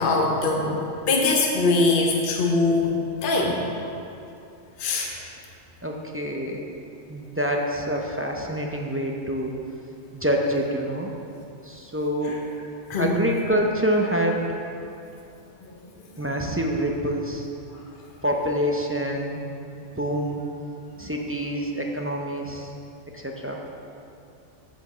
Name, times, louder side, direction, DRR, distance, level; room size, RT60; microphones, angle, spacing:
voice 1, 0.0-3.0 3.2-3.6 4.8-5.1 12.9-13.1, left 3 dB, 45° left, 0 dB, 1.1 m, -22 dB
voice 2, 5.8-6.6 7.1-9.5 10.1-11.1 11.6-12.4 13.0-14.4 16.2-17.5 18.2-19.4 19.8-20.4 21.0-22.7 23.1-23.6, equal, 15° right, 0 dB, 0.5 m, -26 dB
8.3 x 5.2 x 7.2 m, 2.6 s
omnidirectional pair, 1.3 m